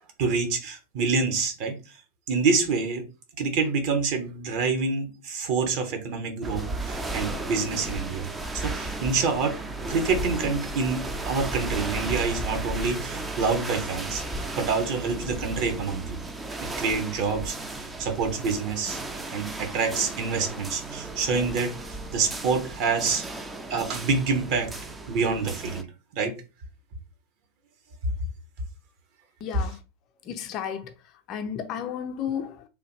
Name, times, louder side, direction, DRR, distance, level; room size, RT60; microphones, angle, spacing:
voice 1, 0.2-1.8 2.3-3.0 3.4-8.3 8.5-9.6 9.9-11.0 11.3-16.3 16.6-19.0 19.3-23.3 23.7-24.7 25.1-25.9 26.1-26.4, right 4 dB, 45° right, 1.0 m, -27 dB
sound 1, 6.4-25.8, right 2 dB, 10° right, 0.5 m, -34 dB
voice 2, 29.4-29.8 30.3-30.9 31.3-32.7, left 8 dB, 35° left, 0.5 m, -32 dB
3.5 x 2.4 x 3.1 m
figure-of-eight pair, 90°, 0 cm